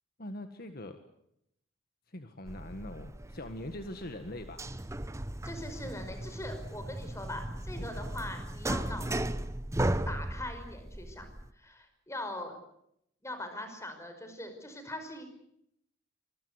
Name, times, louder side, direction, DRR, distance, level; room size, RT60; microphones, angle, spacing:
voice 1, 0.2-1.0 2.1-4.7 7.8-8.1, left 1 dB, 50° left, 7 dB, 1.8 m, -42 dB
sound 1, 2.5-11.5, right 1 dB, 15° right, 0.9 m, -36 dB
voice 2, 5.4-9.4 10.1-11.3 11.5-12.5 13.2-15.2, left 1 dB, 15° left, 7 dB, 5.3 m, -41 dB
25.5 x 22.0 x 8.2 m, 0.76 s
head